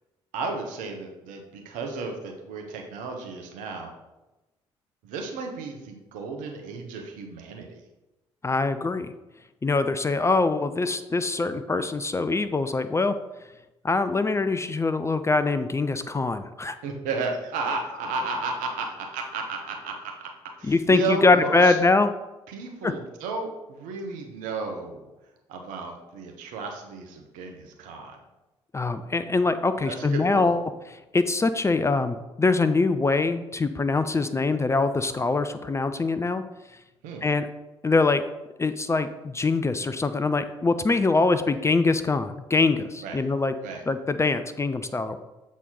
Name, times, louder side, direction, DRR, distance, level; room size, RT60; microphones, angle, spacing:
voice 1, 0.3-3.9 5.0-7.8 16.8-20.3 20.6-21.8 22.5-25.1 25.5-28.2 29.9-30.6 37.0-37.3 43.0-43.2 43.6-43.8, right 4 dB, 65° right, 3 dB, 1.0 m, -33 dB
voice 2, 8.4-9.1 9.6-13.2 13.8-16.7 20.6-22.1 22.8-22.9 28.7-30.6 31.1-36.4 37.2-37.5 37.8-38.2 38.6-43.5 43.9-45.2, left 3 dB, 20° left, 10 dB, 0.4 m, -23 dB
7.3 x 4.1 x 4.0 m, 1.0 s
figure-of-eight pair, 45°, 15 cm